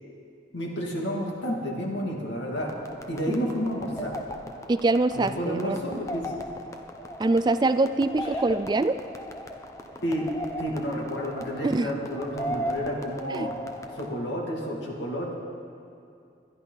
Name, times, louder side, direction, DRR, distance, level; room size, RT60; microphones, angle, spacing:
voice 1, 0.5-2.7 3.1-4.2 5.1-6.2 10.0-10.3 10.6-13.6 14.0-15.3, equal, 80° left, -2 dB, 2.5 m, -30 dB
sound 1, 2.6-14.1, equal, 15° left, 0.8 m, -38 dB
voice 2, 4.7-5.8 7.2-9.0 11.6-11.9 13.3-13.5, right 2 dB, 25° right, 11 dB, 0.3 m, -24 dB
21.5 x 12.0 x 4.0 m, 2.5 s
head